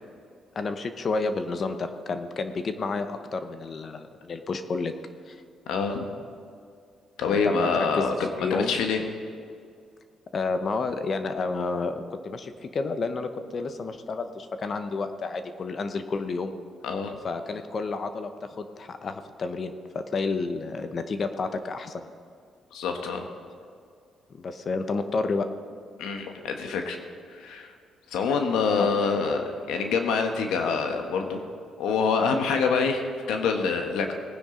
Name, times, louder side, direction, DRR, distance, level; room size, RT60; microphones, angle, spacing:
voice 1, 0.5-4.9 5.3-5.4 7.3-8.8 10.3-16.5 17.2-22.1 24.3-25.5 28.8-28.9, left 4 dB, 45° left, 8 dB, 1.0 m, -30 dB
voice 2, 5.7-6.1 7.2-8.1 8.5-9.0 16.8-17.1 22.7-23.3 26.0-27.0 27.3-27.7 28.1-31.4 31.8-34.1, left 5 dB, 90° left, 4 dB, 1.2 m, -26 dB
18.5 x 9.9 x 3.9 m, 2.2 s
cardioid pair, 90°, 0 cm